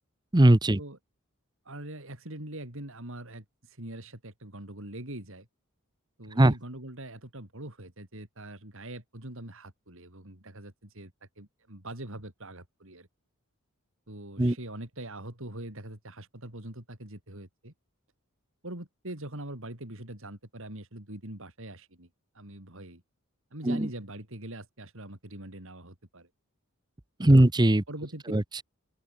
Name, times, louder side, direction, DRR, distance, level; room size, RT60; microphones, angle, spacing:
voice 1, 0.3-0.8 6.4-6.5 14.4-14.6 23.6-23.9 27.2-27.8 28.3-28.6, right 1 dB, 20° right, 0.9 m, -20 dB
voice 2, 1.6-5.5 6.2-11.1 11.4-13.1 14.1-17.7 18.6-22.1 22.3-23.0 23.5-26.3 27.2-27.4 27.9-28.2, right 1 dB, 65° right, 4.9 m, -43 dB
open air
head